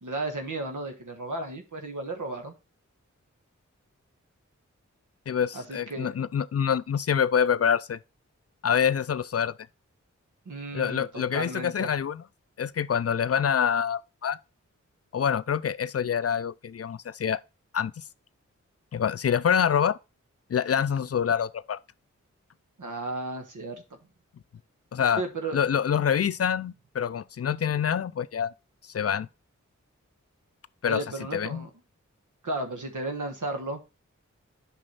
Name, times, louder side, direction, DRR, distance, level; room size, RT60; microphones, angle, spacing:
voice 1, 0.0-2.5 5.5-6.1 10.4-11.9 22.8-23.8 25.2-25.6 30.8-31.7 32.4-33.8, right 2 dB, 80° right, 1.3 m, -34 dB
voice 2, 5.3-8.0 8.6-9.5 10.7-12.2 12.6-14.4 15.1-17.4 17.7-18.0 18.9-20.0 20.5-21.8 24.9-25.2 25.5-28.5 28.9-29.3 30.8-31.0 31.3-31.7, left 8 dB, 50° left, 0.4 m, -26 dB
7.6 x 5.3 x 4.0 m
cardioid pair, 40°, 30 cm